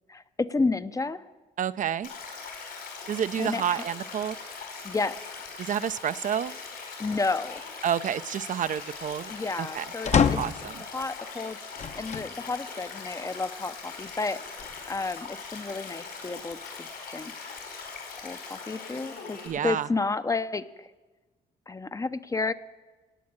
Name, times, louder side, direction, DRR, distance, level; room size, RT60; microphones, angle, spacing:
voice 1, 0.1-1.2 3.4-3.8 4.8-5.2 7.0-7.6 9.3-10.5 10.9-11.6 12.0-14.4 14.9-17.3 18.2-20.9 21.7-22.5, left 3 dB, 20° left, 13 dB, 0.6 m, -31 dB
voice 2, 1.6-2.1 3.1-4.4 5.6-6.6 7.8-9.3 9.6-9.8 10.1-10.7 19.4-19.9, right 9 dB, 55° right, 13 dB, 0.5 m, -29 dB
Stream, 2.0-19.5, left 5 dB, 80° left, 5.3 m, -41 dB
sound 1, 10.0-10.7 11.8-12.3 13.0-13.1 14.3-15.1, left 7 dB, 45° left, 0.8 m, -26 dB
17.0 x 8.5 x 8.7 m, 1.2 s
cardioid pair, 95°, 16 cm